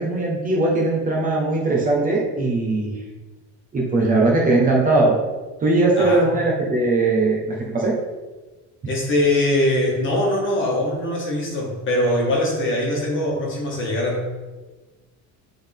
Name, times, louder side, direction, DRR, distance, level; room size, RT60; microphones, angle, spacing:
voice 1, 0.0-3.0 3.7-5.2 5.6-8.0, right 2 dB, 25° right, -2 dB, 0.9 m, -19 dB
voice 2, 6.0-6.3 8.8-14.3, left 1 dB, 35° left, -2 dB, 1.7 m, -22 dB
9.5 x 3.9 x 3.5 m, 1.2 s
cardioid pair, 165°, 35 cm